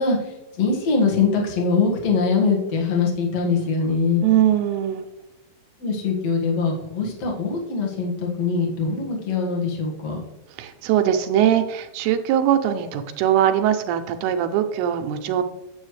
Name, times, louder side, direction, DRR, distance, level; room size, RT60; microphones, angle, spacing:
voice 1, 0.0-4.2 5.8-10.2, left 4 dB, 50° left, -1 dB, 2.2 m, -22 dB
voice 2, 4.2-5.0 10.6-15.4, right 10 dB, 80° right, 7 dB, 2.5 m, -21 dB
9.4 x 7.9 x 3.2 m, 0.97 s
omnidirectional pair, 4.7 m